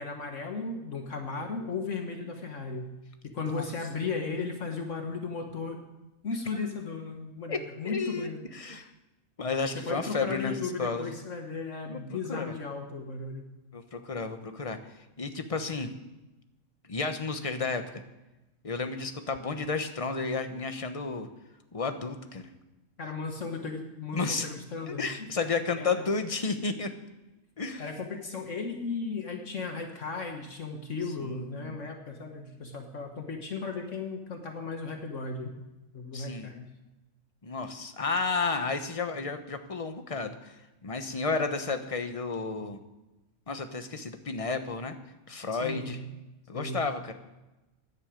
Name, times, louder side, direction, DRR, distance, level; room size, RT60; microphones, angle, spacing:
voice 1, 0.0-2.9 3.2-5.8 6.2-8.4 9.7-13.5 23.0-25.1 25.8-26.1 27.8-35.5 35.9-36.7 45.5-46.1 46.5-46.8, left 4 dB, 60° left, 3 dB, 1.7 m, -36 dB
voice 2, 7.8-8.9 9.4-11.2 11.9-12.5 13.7-14.8 15.2-15.9 16.9-18.0 18.6-21.3 21.7-22.5 24.1-24.5 24.9-26.9 27.6-27.8 31.2-31.7 36.1-36.5 37.4-42.8 43.5-44.9 45.3-46.0 46.5-47.1, left 4 dB, 25° left, 8 dB, 1.0 m, -32 dB
16.5 x 11.0 x 5.1 m, 1.0 s
omnidirectional pair, 1.5 m